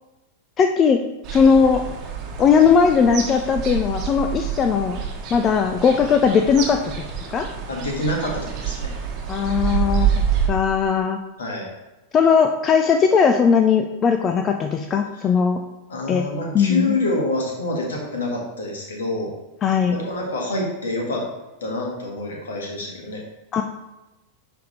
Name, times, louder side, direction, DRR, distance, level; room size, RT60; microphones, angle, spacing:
voice 1, 0.6-1.0 1.3-1.8 2.4-5.0 5.3-6.9 7.3-7.5 9.3-10.1 10.5-11.2 12.1-15.6 16.1-16.2 16.5-17.0 19.6-20.0 23.5-23.6, left 6 dB, 25° left, 6 dB, 0.4 m, -18 dB
sound 1, 1.2-10.5, right 7 dB, 35° right, 1.1 m, -27 dB
voice 2, 7.7-8.9 11.4-11.7 15.1-15.2 15.9-19.3 19.9-21.2 21.6-23.2, left 2 dB, 65° left, -1 dB, 1.7 m, -26 dB
10.5 x 3.5 x 3.1 m, 1.0 s
figure-of-eight pair, 90°, 0 cm